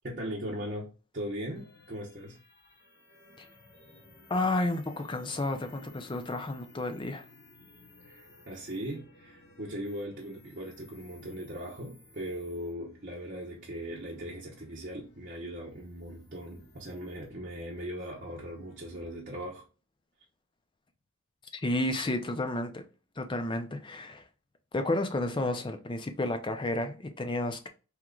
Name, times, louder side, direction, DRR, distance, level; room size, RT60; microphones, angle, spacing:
voice 1, 0.0-0.9 1.1-2.4 8.0-19.6, equal, 35° right, 0.7 m, -39 dB
sound 1, 1.6-19.2, left 3 dB, 45° left, 1.0 m, -58 dB
voice 2, 4.3-7.2 21.5-22.8 23.2-24.2 24.7-27.7, left 2 dB, 20° left, 0.4 m, -31 dB
3.6 x 3.0 x 2.3 m
head